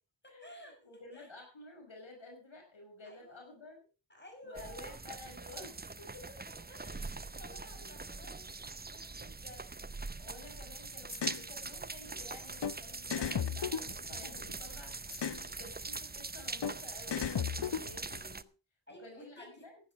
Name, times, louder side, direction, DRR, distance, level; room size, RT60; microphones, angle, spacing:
voice 1, 0.2-1.3 3.0-3.4 4.1-5.0 6.5-9.8 18.9-19.7, equal, 25° left, 2 dB, 6.1 m, -54 dB
voice 2, 0.8-3.8 4.4-6.4 7.5-7.9 10.2-15.0 15.2-18.5 19.0-19.8, left 2 dB, 90° left, 1 dB, 5.7 m, -52 dB
sound 1, 4.5-18.4, right 3 dB, 20° right, 0.6 m, -43 dB
sound 2, 11.1-11.4 12.6-12.7 13.1-14.5 15.1-15.4 16.6-16.7 17.1-18.2, left 8 dB, 65° left, 0.8 m, -35 dB
15.5 x 10.5 x 4.7 m, 0.34 s
wide cardioid pair, 65°, 45 cm